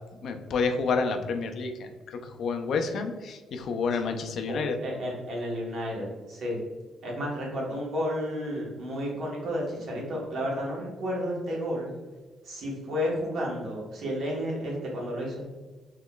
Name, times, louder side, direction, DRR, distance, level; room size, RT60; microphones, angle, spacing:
voice 1, 0.2-1.9 2.2-4.8, left 4 dB, 65° left, 6 dB, 0.4 m, -29 dB
voice 2, 4.5-6.6 7.0-11.9 12.4-15.5, equal, 65° right, -3 dB, 1.2 m, -32 dB
3.8 x 3.0 x 2.3 m, 1.3 s
cardioid pair, 90°, 0 cm